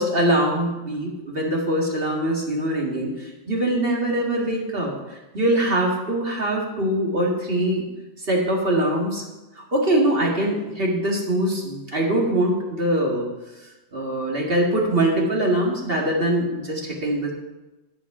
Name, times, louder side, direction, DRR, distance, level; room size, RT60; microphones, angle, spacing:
voice 1, 0.0-4.9 5.3-7.8 8.3-9.2 9.6-13.3 13.9-17.3, right 1 dB, 40° right, -1 dB, 2.1 m, -23 dB
9.9 x 9.4 x 4.9 m, 1.1 s
omnidirectional pair, 1.4 m